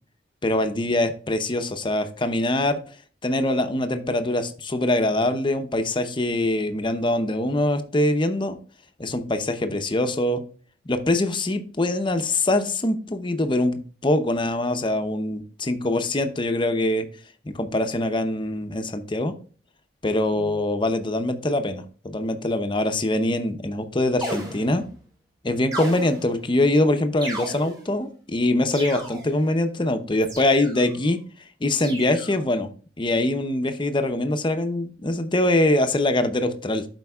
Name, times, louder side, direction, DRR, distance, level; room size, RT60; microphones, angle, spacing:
voice 1, 0.4-2.8 3.2-8.6 9.0-10.4 10.9-17.1 17.4-19.3 20.0-24.9 25.4-31.2 31.6-32.7 33.0-36.9, left 1 dB, 30° left, 8 dB, 0.7 m, -23 dB
sound 1, 24.2-25.0 25.7-26.5 27.2-28.0 28.7-29.5 30.2-31.0 31.7-32.4, right 1 dB, 25° right, 2.4 m, -35 dB
12.0 x 4.5 x 2.3 m, 0.40 s
head